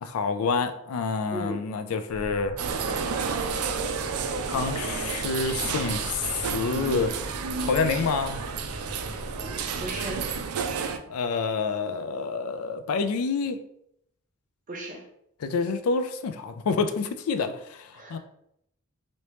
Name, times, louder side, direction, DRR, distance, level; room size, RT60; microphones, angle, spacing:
voice 1, 0.0-2.5 4.5-7.1 7.6-8.4 11.1-13.6 15.4-18.2, left 4 dB, 75° left, 10 dB, 0.4 m, -28 dB
sound 1, 2.1-10.4, equal, 15° right, 1.4 m, -40 dB
sound 2, 2.6-11.0, right 6 dB, 90° right, 0.4 m, -31 dB
voice 2, 9.4-10.2 14.7-15.0 17.9-18.2, right 1 dB, 40° right, 0 dB, 0.6 m, -36 dB
3.2 x 2.8 x 3.0 m, 0.75 s
head